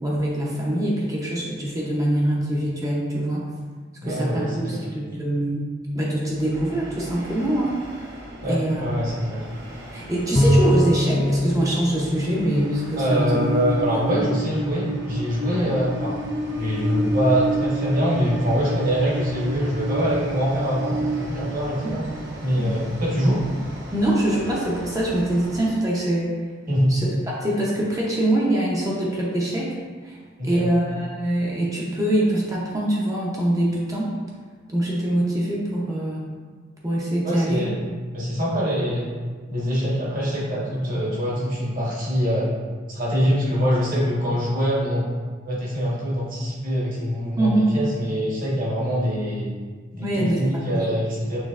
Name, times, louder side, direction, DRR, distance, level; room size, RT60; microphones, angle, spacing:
voice 1, 0.0-3.4 4.0-5.7 5.9-7.8 8.5-8.8 9.9-13.4 13.9-14.0 15.6-15.7 21.8-21.9 22.6-22.8 23.9-26.3 26.9-29.8 30.0-30.2 30.4-34.1 34.7-36.3 36.8-37.7 47.4-47.7 50.0-51.0, right 1 dB, 15° right, -4 dB, 0.7 m, -24 dB
voice 2, 4.0-4.8 8.4-9.4 13.0-16.2 16.5-22.0 22.4-23.4 26.7-27.0 30.4-30.7 37.2-37.8 38.1-39.1 39.5-42.5 42.9-45.0 45.5-49.5 49.9-51.4, equal, 45° right, -6 dB, 1.2 m, -24 dB
Train, 6.3-25.8, equal, 60° right, 0.9 m, -32 dB
Bowed string instrument, 10.4-13.0, equal, 20° left, 0.4 m, -22 dB
6.3 x 3.0 x 2.4 m, 1.5 s
head